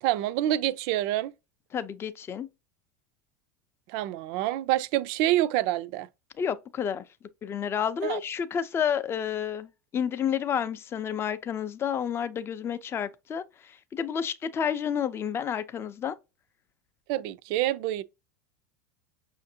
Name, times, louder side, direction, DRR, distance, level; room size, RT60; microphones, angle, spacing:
voice 1, 0.0-1.3 3.9-6.1 8.0-8.2 17.1-18.0, right 14 dB, 60° right, 0.3 m, -27 dB
voice 2, 1.7-2.5 6.4-7.1 7.4-16.2, left 8 dB, 30° left, 0.4 m, -30 dB
5.8 x 2.5 x 2.7 m
hypercardioid pair, 100°, 9 cm